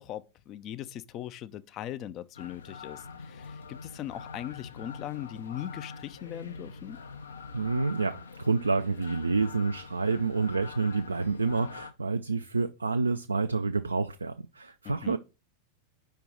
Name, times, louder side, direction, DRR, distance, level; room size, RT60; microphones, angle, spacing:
voice 1, 0.0-7.0 14.8-15.2, left 12 dB, 35° left, 0.5 m, -40 dB
sound 1, 2.3-11.9, left 5 dB, 70° left, 0.7 m, -44 dB
voice 2, 7.5-15.2, right 4 dB, 80° right, 0.3 m, -28 dB
5.2 x 4.6 x 5.0 m
figure-of-eight pair, 90°, 0 cm